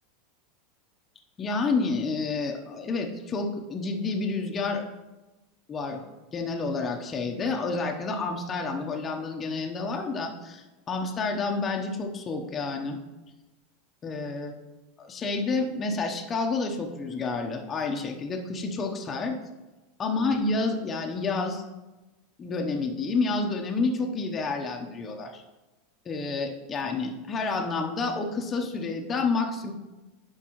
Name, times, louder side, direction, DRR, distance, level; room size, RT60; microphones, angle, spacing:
voice 1, 1.4-4.8 5.7-6.0 6.3-13.0 14.0-14.5 15.0-19.4 20.0-21.6 22.4-25.4 26.1-29.7, left 3 dB, 25° left, 2 dB, 0.8 m, -29 dB
11.0 x 4.7 x 3.0 m, 1.1 s
supercardioid pair, 135°, 0 cm